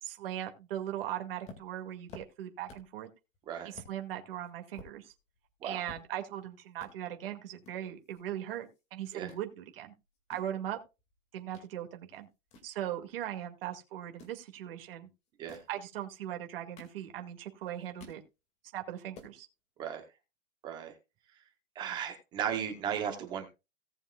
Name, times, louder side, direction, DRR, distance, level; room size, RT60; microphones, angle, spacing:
voice 1, 0.0-3.1 3.6-5.1 5.6-9.9 10.3-10.8 11.3-12.3 12.6-15.1 15.7-18.2 18.7-19.5, right 11 dB, 45° right, 4 dB, 2.2 m, -39 dB
sound 1, 1.4-3.0 3.3-3.4 3.7-3.9 4.4-6.4 6.7-6.9 7.6-8.8 9.1-9.4 10.0-11.7 12.1-13.4 14.0-14.4 15.3-15.8 16.4-17.4 17.7-18.2 18.6-18.7 19.0-19.4, left 3 dB, 15° left, 2.1 m, -53 dB
voice 2, 21.7-23.5, right 8 dB, 10° right, 6 dB, 0.8 m, -36 dB
18.0 x 7.2 x 2.3 m, 0.27 s
hypercardioid pair, 175°, 39 cm